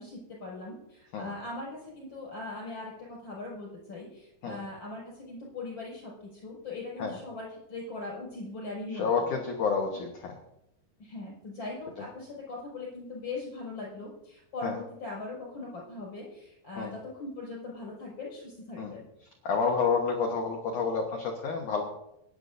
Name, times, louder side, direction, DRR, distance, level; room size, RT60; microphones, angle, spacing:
voice 1, 0.0-9.4 9.9-10.0 11.0-19.1, left 2 dB, 25° left, -3 dB, 6.6 m, -40 dB
voice 2, 8.9-10.3 12.0-12.1 14.6-14.8 16.8-16.9 18.8-18.9 19.4-21.8, left 5 dB, 85° left, 1 dB, 1.7 m, -29 dB
23.5 x 11.0 x 2.7 m, 0.85 s
omnidirectional pair, 5.5 m